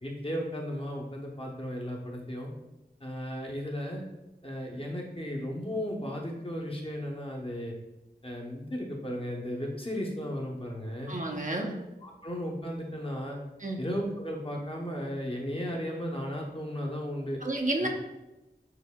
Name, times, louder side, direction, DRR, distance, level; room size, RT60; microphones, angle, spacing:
voice 1, 0.0-2.5 3.0-4.0 4.4-7.7 8.2-11.1 11.5-11.6 12.0-13.4 13.8-17.4, equal, 30° left, -1 dB, 0.8 m, -35 dB
voice 2, 11.1-11.7 13.6-13.8 17.4-17.9, right 2 dB, 50° right, 1 dB, 0.6 m, -30 dB
6.7 x 2.7 x 2.2 m, 0.99 s
wide cardioid pair, 50°, 17 cm